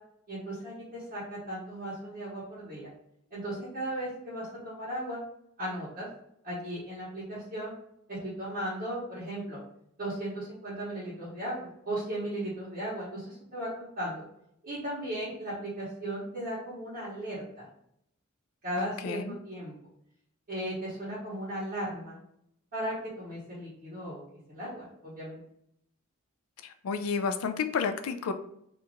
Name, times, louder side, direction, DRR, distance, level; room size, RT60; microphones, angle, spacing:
voice 1, 0.3-2.9 3.3-5.2 5.6-6.1 6.4-7.7 8.1-9.6 10.0-14.2 14.6-17.6 18.6-19.7 20.5-22.2 22.7-24.2 24.5-25.4, right 1 dB, 45° right, -11 dB, 1.2 m, -36 dB
voice 2, 18.8-19.4 26.6-28.3, left 5 dB, 75° left, 8 dB, 0.4 m, -31 dB
2.8 x 2.5 x 3.5 m, 0.73 s
head